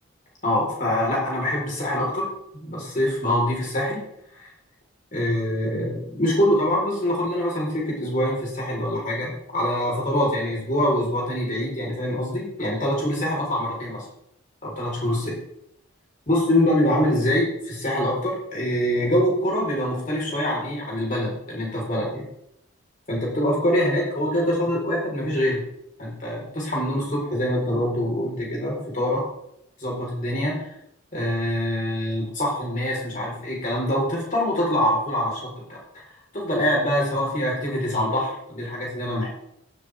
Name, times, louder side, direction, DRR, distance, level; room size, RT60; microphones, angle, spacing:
voice 1, 0.4-2.3 2.5-4.0 4.3-4.5 5.1-14.0 14.6-15.3 16.3-22.3 23.1-25.6 26.0-29.2 29.8-30.7 31.1-35.8 36.3-39.3, left 1 dB, 40° left, -3 dB, 4.0 m, -24 dB
15.5 x 7.6 x 3.4 m, 0.77 s
head